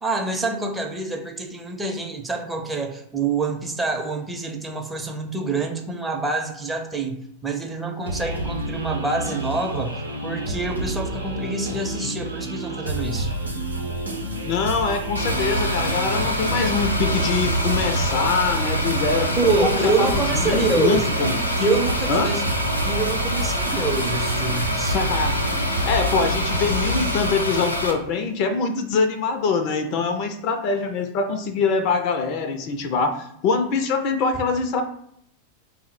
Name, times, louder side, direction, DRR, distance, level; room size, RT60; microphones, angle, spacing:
voice 1, 0.0-7.2 7.4-13.3 19.4-21.1 21.6-22.4 22.9-25.0, right 3 dB, 10° right, 3 dB, 0.5 m, -26 dB
sound 1, 8.1-27.3, right 1 dB, 80° right, 0.7 m, -29 dB
voice 2, 14.5-19.3 19.6-21.4 22.1-22.4 24.9-25.4 25.8-34.8, left 4 dB, 45° left, 7 dB, 0.4 m, -24 dB
sound 2, 15.2-27.9, equal, 85° left, 0.6 m, -25 dB
3.5 x 2.0 x 4.3 m, 0.70 s
figure-of-eight pair, 90°, 0 cm